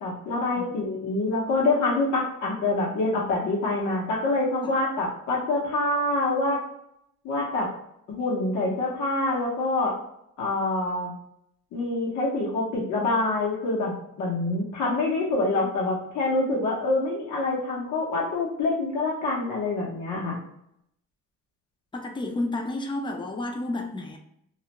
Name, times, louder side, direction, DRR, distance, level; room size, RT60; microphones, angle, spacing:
voice 1, 0.0-6.6 7.2-7.7 8.1-10.0 10.4-11.1 11.7-20.4, left 2 dB, 75° left, -4 dB, 0.9 m, -26 dB
voice 2, 0.6-0.9 4.6-4.7 21.9-24.2, left 2 dB, 15° left, 3 dB, 0.4 m, -31 dB
2.4 x 2.0 x 2.9 m, 0.72 s
cardioid pair, 90°, 30 cm